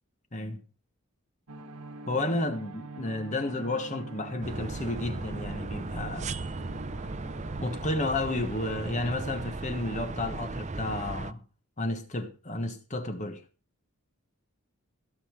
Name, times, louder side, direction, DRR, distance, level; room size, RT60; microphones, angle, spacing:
voice 1, 0.3-0.6 2.1-6.3 7.6-11.4 11.8-13.4, left 2 dB, 30° left, 1.3 m, -32 dB
sound 1, 1.5-7.8, right 2 dB, 90° right, 1.5 m, -44 dB
sound 2, 4.4-11.3, right 3 dB, 30° right, 0.6 m, -36 dB
16.0 x 5.5 x 7.4 m
head